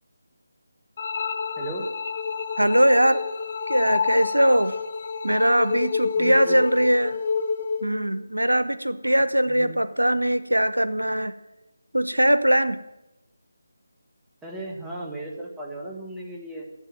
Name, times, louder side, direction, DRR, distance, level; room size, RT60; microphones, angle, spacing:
sound 1, 1.0-8.0, left 5 dB, 35° left, 0.8 m, -29 dB
voice 1, 1.6-1.9 6.2-6.6 9.5-9.7 14.4-16.7, right 1 dB, 5° right, -2 dB, 1.9 m, -36 dB
voice 2, 2.6-3.2 3.7-4.8 5.2-7.2 7.8-11.3 11.9-12.8, equal, 90° right, 13 dB, 0.9 m, -21 dB
12.0 x 8.0 x 9.1 m, 0.94 s
figure-of-eight pair, 155°, 0 cm